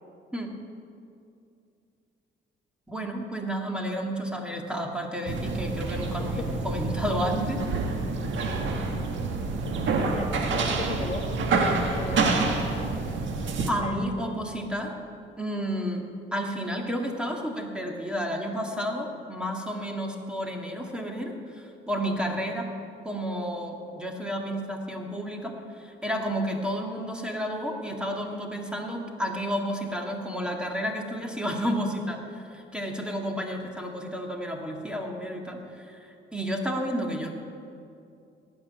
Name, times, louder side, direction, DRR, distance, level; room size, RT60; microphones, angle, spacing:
voice 1, 2.9-7.6 13.7-14.9 15.4-16.0 16.3-22.7 23.0-37.3, equal, 5° right, 1 dB, 2.1 m, -31 dB
sound 1, 5.3-13.7, right 3 dB, 70° right, 1.7 m, -27 dB
voice 2, 10.1-12.9 13.8-14.0, left 3 dB, 30° left, 2 dB, 1.9 m, -37 dB
18.0 x 6.2 x 9.6 m, 2.5 s
cardioid pair, 90°, 20 cm